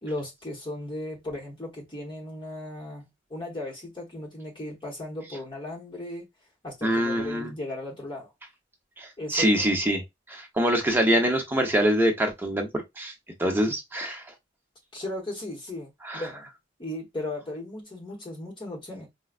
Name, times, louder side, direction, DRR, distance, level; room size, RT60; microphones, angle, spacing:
voice 1, 0.0-6.3 6.6-8.3 9.2-9.8 14.9-16.5 16.8-19.1, left 1 dB, 25° left, 1.0 m, -36 dB
voice 2, 6.8-7.5 9.0-10.0 10.3-13.1 13.4-14.2 16.0-16.2, equal, 10° right, 0.8 m, -24 dB
4.7 x 2.1 x 2.4 m
head